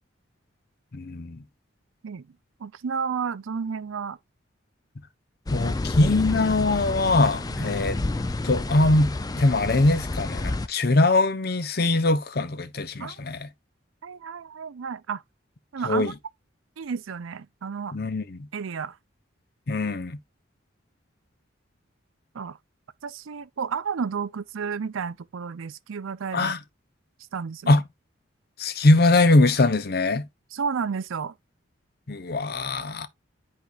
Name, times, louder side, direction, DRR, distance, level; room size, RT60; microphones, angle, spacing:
voice 1, 0.9-1.4 5.5-8.0 8.4-13.5 15.8-16.1 17.9-18.5 19.7-20.2 26.3-26.6 27.7-27.8 28.6-30.3 32.1-33.1, left 2 dB, 50° left, 0.7 m, -22 dB
voice 2, 2.6-4.2 7.6-7.7 13.0-13.1 14.0-15.2 15.7-16.1 16.8-18.0 18.5-19.0 22.3-22.6 23.0-26.5 27.3-27.8 30.5-31.3, right 6 dB, 90° right, 0.5 m, -31 dB
sound 1, 5.5-10.7, left 2 dB, 20° left, 0.4 m, -29 dB
10.5 x 4.4 x 2.4 m
head